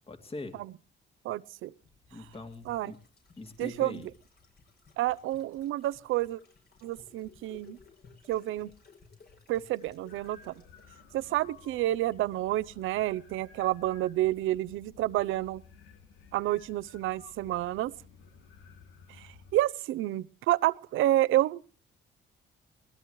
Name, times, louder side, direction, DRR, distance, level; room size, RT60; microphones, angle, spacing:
voice 1, 0.1-0.6 2.1-3.0 3.4-4.1, left 2 dB, 30° left, 5 dB, 2.7 m, -42 dB
voice 2, 1.2-1.7 2.7-2.9 3.6-4.1 5.0-6.4 6.8-7.8 8.3-8.7 9.5-10.5 11.1-15.6 16.3-17.9 19.1-21.7, right 15 dB, 90° right, 18 dB, 0.7 m, -29 dB
sound 1, 1.8-12.2 12.5-12.6, left 4 dB, 55° left, 7.5 m, -59 dB
sound 2, 10.1-19.6, left 5 dB, 90° left, 1.9 m, -55 dB
20.5 x 20.5 x 3.1 m, 0.39 s
cardioid pair, 90°, 20 cm